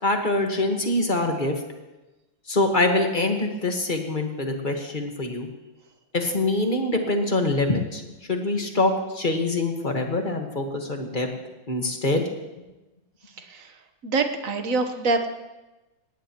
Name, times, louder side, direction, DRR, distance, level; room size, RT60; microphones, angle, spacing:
voice 1, 0.0-1.6 2.5-5.5 6.1-8.0 8.3-11.3 11.7-12.2, left 2 dB, 25° left, 3 dB, 1.4 m, -24 dB
voice 2, 13.4-13.7 14.0-15.3, right 3 dB, 50° right, 6 dB, 1.4 m, -25 dB
18.5 x 18.0 x 3.0 m, 1.1 s
omnidirectional pair, 2.1 m